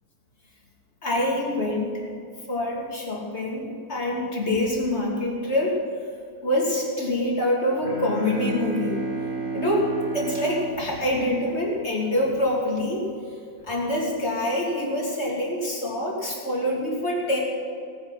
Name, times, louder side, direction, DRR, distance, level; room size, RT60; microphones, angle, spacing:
voice 1, 1.0-2.0 2.5-5.7 6.4-9.0 9.5-9.9 10.1-13.1 13.6-17.4, left 1 dB, 45° left, -3 dB, 3.2 m, -25 dB
Bowed string instrument, 7.8-12.1, right 3 dB, 45° right, 2.0 m, -32 dB
18.0 x 9.8 x 5.9 m, 2.4 s
omnidirectional pair, 1.6 m